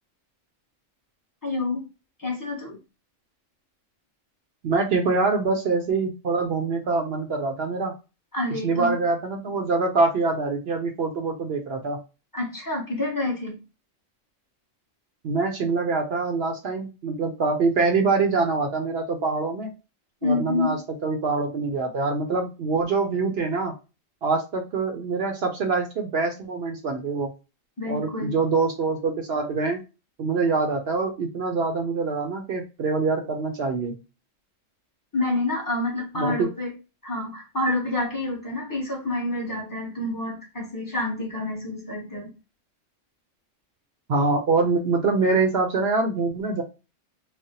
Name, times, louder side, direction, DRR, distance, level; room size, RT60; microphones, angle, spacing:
voice 1, 1.4-1.8 2.2-2.8 8.3-9.0 12.3-13.6 20.2-20.8 27.8-28.4 35.1-36.7 37.0-42.3, left 2 dB, 20° left, 0.6 m, -28 dB
voice 2, 4.6-7.9 8.6-12.0 15.2-19.7 20.2-23.7 24.2-27.3 27.9-29.8 30.2-34.0 36.2-36.5 44.1-46.6, right 4 dB, 60° right, 0.7 m, -24 dB
3.3 x 2.0 x 2.7 m
omnidirectional pair, 1.4 m